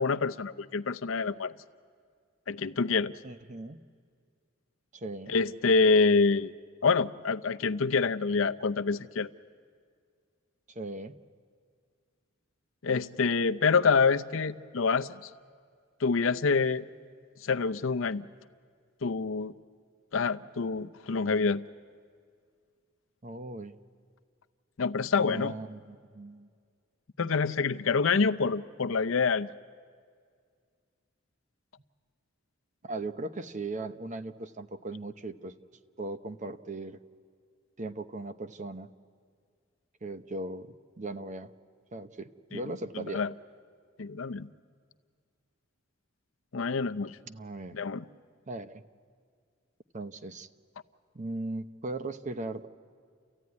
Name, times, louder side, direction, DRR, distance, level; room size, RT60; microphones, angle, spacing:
voice 1, 0.0-1.5 2.5-3.1 5.3-6.5 6.8-9.3 12.8-15.3 16.0-16.8 17.4-18.2 19.0-19.5 20.1-21.6 24.8-25.5 27.2-29.5 42.5-42.6 42.9-43.3 44.0-44.5 46.5-47.2 47.7-48.1, left 4 dB, 75° left, 10 dB, 0.6 m, -26 dB
voice 2, 3.2-3.8 4.9-5.3 10.7-11.2 23.2-23.8 25.1-26.5 32.8-35.6 36.0-37.0 37.8-38.9 40.0-41.5 41.9-43.2 47.3-47.8 48.5-48.8 49.9-50.5 51.1-52.7, right 2 dB, 35° right, 10 dB, 0.8 m, -38 dB
30.0 x 14.5 x 9.6 m, 2.1 s
head